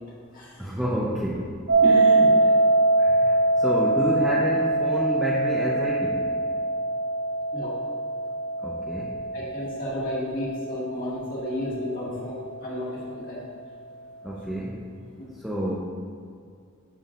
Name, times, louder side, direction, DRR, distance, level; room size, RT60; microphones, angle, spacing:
voice 1, 0.6-1.6 3.0-6.3 8.6-9.2 14.2-14.8 15.4-15.7, equal, 5° right, -6 dB, 0.6 m, -29 dB
sound 1, 1.7-12.6, right 2 dB, 75° right, 1.1 m, -23 dB
voice 2, 1.8-2.6 7.5-7.7 9.3-13.4 15.2-15.3, left 1 dB, 45° left, -6 dB, 1.8 m, -32 dB
10.5 x 5.8 x 2.5 m, 2.2 s
head